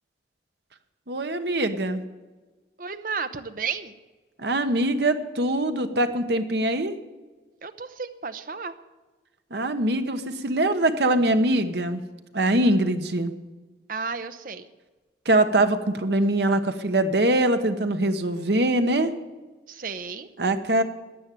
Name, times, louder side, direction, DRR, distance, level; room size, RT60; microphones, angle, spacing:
voice 1, 1.1-2.0 4.4-6.9 9.5-12.0 12.3-13.3 15.2-19.1 20.4-20.8, right 1 dB, 75° right, 9 dB, 1.1 m, -23 dB
voice 2, 2.8-3.9 7.6-8.7 13.9-14.7 19.7-20.3, right 5 dB, 50° right, 11 dB, 0.9 m, -33 dB
13.0 x 8.8 x 9.2 m, 1.3 s
head